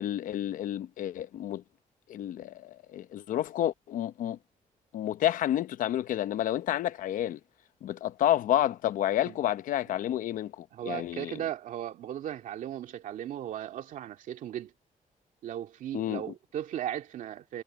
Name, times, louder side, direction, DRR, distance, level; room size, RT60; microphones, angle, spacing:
voice 1, 0.0-1.6 2.1-4.4 4.9-7.4 7.8-11.4 15.9-16.2, left 12 dB, 80° left, 0.9 m, -30 dB
voice 2, 10.7-14.7 15.4-17.6, right 11 dB, 75° right, 2.3 m, -37 dB
wide cardioid pair, 180°, 14 cm